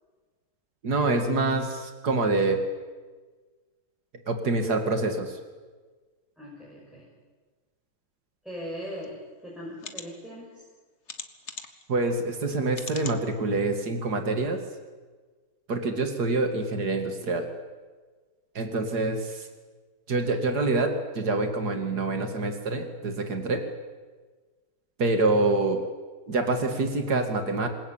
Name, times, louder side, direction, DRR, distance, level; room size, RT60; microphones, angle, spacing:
voice 1, 0.8-2.6 4.3-5.4 11.9-14.6 15.7-17.5 18.5-19.5 20.1-23.6 25.0-25.8 26.3-27.7, right 3 dB, 85° right, 6 dB, 2.8 m, -26 dB
voice 2, 6.4-7.1 8.4-10.6, equal, ahead, -5 dB, 6.6 m, -39 dB
sound 1, 9.0-9.1 9.8-10.1 11.1-11.8 12.7-13.2 13.8-13.9 14.2-14.3, left 5 dB, 45° left, 1.8 m, -39 dB
27.5 x 21.0 x 8.9 m, 1.4 s
omnidirectional pair, 1.7 m